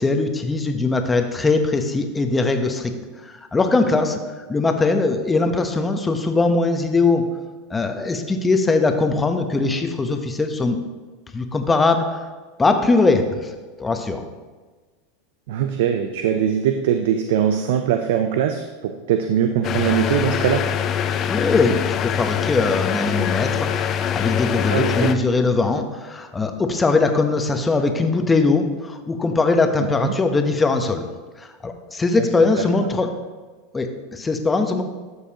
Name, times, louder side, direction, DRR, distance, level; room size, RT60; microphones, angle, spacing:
voice 1, 0.0-2.9 3.2-4.2 4.5-7.2 7.7-10.8 11.3-12.2 12.6-13.5 13.8-14.2 21.3-31.0 31.4-33.1 33.7-34.8, left 3 dB, 15° left, 6 dB, 0.9 m, -21 dB
voice 2, 15.5-20.6 24.7-25.1 29.8-30.1 32.2-32.3 32.6-32.9, right 9 dB, 70° right, 7 dB, 0.5 m, -22 dB
sound 1, 19.6-25.1, left 9 dB, 40° left, 0.6 m, -23 dB
12.0 x 6.6 x 2.9 m, 1.3 s
hypercardioid pair, 105°, 0 cm